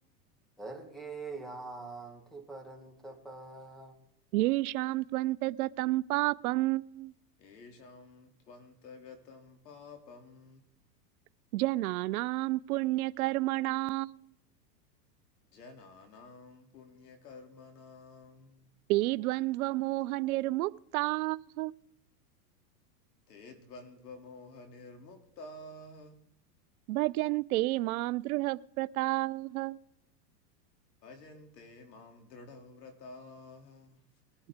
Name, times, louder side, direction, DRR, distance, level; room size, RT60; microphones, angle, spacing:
voice 1, 0.6-3.9, right 3 dB, ahead, 2.1 m, -44 dB
voice 2, 4.3-7.1 11.5-14.3 18.9-21.7 26.9-29.8, right 19 dB, 65° right, 0.5 m, -30 dB
voice 3, 7.4-10.6 15.5-18.7 23.3-26.2 31.0-34.0, left 2 dB, 90° left, 3.0 m, -51 dB
21.0 x 11.5 x 3.6 m
supercardioid pair, 130°, 47 cm